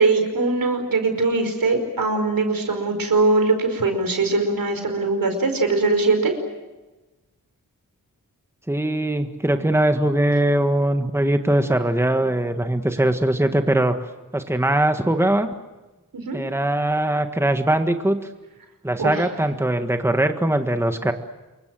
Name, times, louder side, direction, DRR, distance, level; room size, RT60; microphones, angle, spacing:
voice 1, 0.0-6.3 16.1-16.4 19.0-19.2, right 3 dB, 90° right, 6 dB, 5.1 m, -21 dB
voice 2, 8.7-14.0 14.3-15.5 16.3-18.2 18.8-21.1, right 1 dB, 10° right, 7 dB, 1.6 m, -21 dB
27.5 x 23.5 x 7.7 m, 1.1 s
wide cardioid pair, 100°, 33 cm